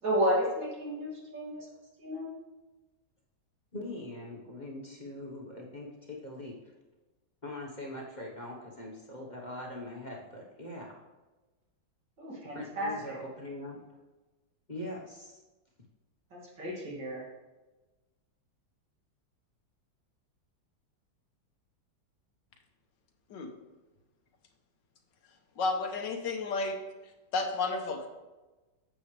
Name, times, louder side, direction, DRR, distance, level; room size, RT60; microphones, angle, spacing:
voice 1, 0.0-1.7 2.0-2.3 12.2-13.2 16.3-17.2, equal, 80° right, -4 dB, 3.1 m, -32 dB
voice 2, 3.7-6.5 7.4-10.9 12.5-13.8 14.7-15.4, left 1 dB, 30° left, -2 dB, 1.1 m, -42 dB
voice 3, 25.6-26.8 27.3-28.1, left 3 dB, 80° left, 4 dB, 1.7 m, -31 dB
9.5 x 7.8 x 3.3 m, 1.2 s
omnidirectional pair, 1.9 m